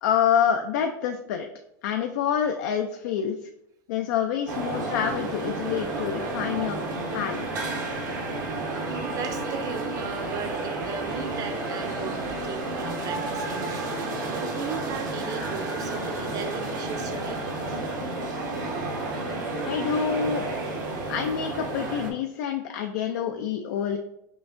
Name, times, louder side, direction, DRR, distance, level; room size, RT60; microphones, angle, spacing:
voice 1, 0.0-1.5 1.8-3.4 3.9-6.8 7.1-7.7 19.7-20.5 21.1-24.0, left 8 dB, 75° left, 5 dB, 0.4 m, -27 dB
sound 1, 4.5-22.1, right 2 dB, 80° right, 1.0 m, -31 dB
voice 2, 8.8-17.4, right 6 dB, 35° right, 7 dB, 0.6 m, -37 dB
5.5 x 2.5 x 2.5 m, 0.81 s
supercardioid pair, 120°, 10 cm